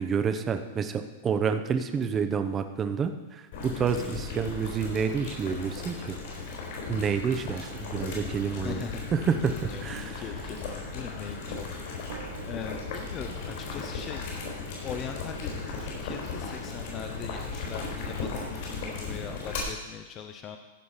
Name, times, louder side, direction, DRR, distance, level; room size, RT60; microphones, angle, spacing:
voice 1, 0.0-6.2 6.9-8.8 9.1-10.2, right 6 dB, 20° right, 8 dB, 0.7 m, -29 dB
Boiling, 3.5-19.6, left 4 dB, 60° left, 4.1 m, -36 dB
voice 2, 8.6-9.1 9.5-14.2 14.8-20.6, left 8 dB, 25° left, 5 dB, 0.6 m, -41 dB
sound 1, 12.1-14.7, right 8 dB, 75° right, 0.8 m, -48 dB
14.5 x 5.0 x 5.7 m, 1.1 s
supercardioid pair, 150°, 0 cm